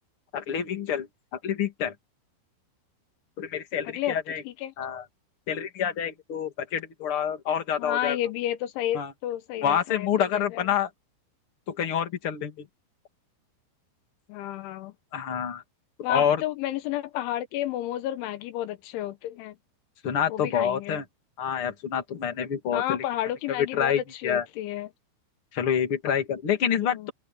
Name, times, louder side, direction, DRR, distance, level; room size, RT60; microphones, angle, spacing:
voice 1, 0.3-1.1 1.4-1.9 3.4-4.4 4.8-5.0 5.5-8.2 8.9-9.1 9.6-10.9 11.7-12.7 15.1-15.6 16.1-16.4 20.0-21.0 21.4-23.0 23.6-24.4 25.5-27.1, left 8 dB, 35° left, 2.6 m, -27 dB
voice 2, 3.9-4.2 4.5-4.7 7.8-10.6 14.3-14.9 16.0-19.6 20.3-21.0 22.7-24.9 27.0-27.1, left 13 dB, 80° left, 3.4 m, -31 dB
omnidirectional pair, 5.5 m